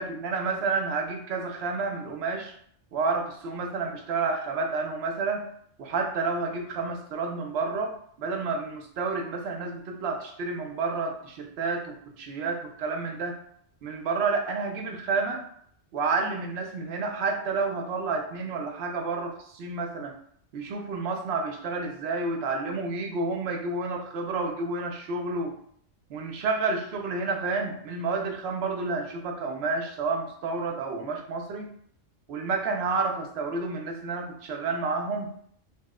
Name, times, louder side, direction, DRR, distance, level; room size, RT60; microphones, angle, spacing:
voice 1, 0.0-2.5 2.9-5.5 5.8-13.4 13.8-15.4 15.9-20.1 20.5-25.5 26.1-31.7 32.3-35.3, right 4 dB, 65° right, 3 dB, 0.8 m, -30 dB
2.9 x 2.0 x 3.5 m, 0.64 s
omnidirectional pair, 1.2 m